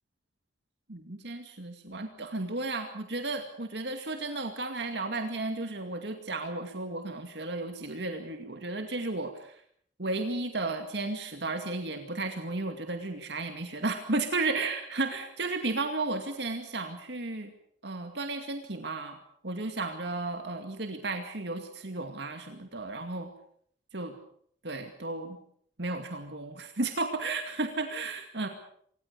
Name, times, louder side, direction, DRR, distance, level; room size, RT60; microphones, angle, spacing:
voice 1, 0.9-9.6 10.0-17.5 17.8-23.3 23.9-24.1 24.6-25.4 25.8-28.5, right 2 dB, 65° right, 6 dB, 2.3 m, -34 dB
26.5 x 19.5 x 6.9 m, 0.64 s
head